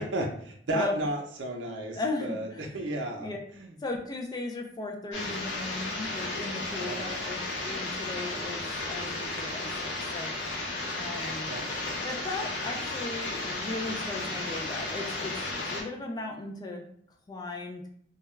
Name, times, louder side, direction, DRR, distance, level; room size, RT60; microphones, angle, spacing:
voice 1, 0.0-2.5 2.7-3.7 6.6-7.2 11.2-11.7, right 1 dB, 85° right, 1 dB, 0.5 m, -34 dB
voice 2, 2.0-2.9 3.2-3.4 3.8-10.3 11.0-11.6 12.0-15.3 15.7-16.8 17.3-17.9, left 2 dB, 20° left, 1 dB, 0.3 m, -36 dB
sound 1, 5.1-15.8, left 2 dB, 80° left, 0.7 m, -34 dB
2.2 x 2.2 x 3.0 m, 0.63 s
head